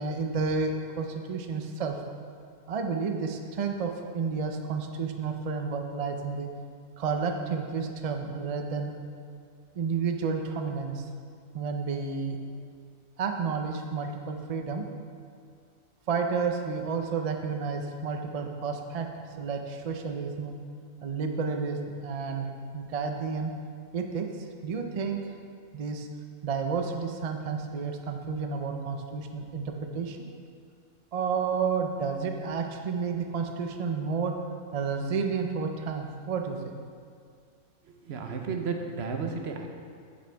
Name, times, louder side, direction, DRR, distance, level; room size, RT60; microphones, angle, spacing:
voice 1, 0.0-2.0 2.7-6.5 7.0-8.9 9.7-11.1 11.5-12.4 13.2-14.9 16.1-19.1 19.4-20.5 21.0-22.5 22.7-23.5 23.9-25.2 25.7-26.1 26.4-30.2 31.1-34.3 34.7-36.7, right 5 dB, 70° right, 4 dB, 0.3 m, -31 dB
voice 2, 37.8-39.7, right 5 dB, 55° right, 4 dB, 0.9 m, -33 dB
9.7 x 7.7 x 3.4 m, 2.2 s
omnidirectional pair, 1.5 m